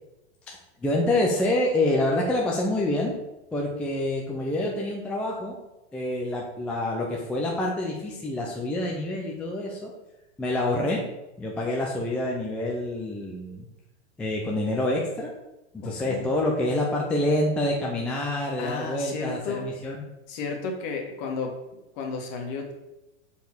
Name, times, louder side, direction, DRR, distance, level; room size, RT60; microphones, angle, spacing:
voice 1, 0.8-3.2 3.5-5.6 5.9-9.9 10.4-11.0 11.4-13.7 14.2-15.3 15.7-20.0, left 1 dB, 5° left, -2 dB, 0.3 m, -27 dB
voice 2, 15.8-16.3 18.6-19.7 20.3-21.6 21.9-22.7, left 4 dB, 45° left, 2 dB, 1.6 m, -32 dB
5.2 x 4.6 x 5.9 m, 0.96 s
supercardioid pair, 150°, 34 cm